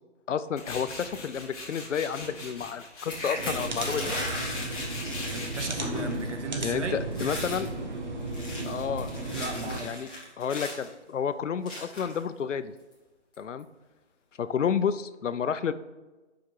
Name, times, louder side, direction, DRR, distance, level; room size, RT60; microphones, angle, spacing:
voice 1, 0.3-4.2 6.6-7.7 8.7-9.1 9.8-10.1 10.4-12.7 13.4-13.7 14.4-15.7, left 7 dB, 90° left, 13 dB, 0.6 m, -30 dB
Tools, 0.6-9.4, left 2 dB, 30° left, 2.1 m, -42 dB
sound 1, 3.0-6.3 6.6-6.9 7.1-7.7 8.2-10.9 11.7-12.2 12.9-13.0 13.3-13.6, left 1 dB, 5° left, 0.7 m, -37 dB
sound 2, 3.4-9.8, right 2 dB, 40° right, 0.9 m, -35 dB
voice 2, 5.3-7.0 9.3-10.0, right 3 dB, 75° right, 6 dB, 1.2 m, -35 dB
7.3 x 5.2 x 4.4 m, 1.2 s
hypercardioid pair, 170°, 36 cm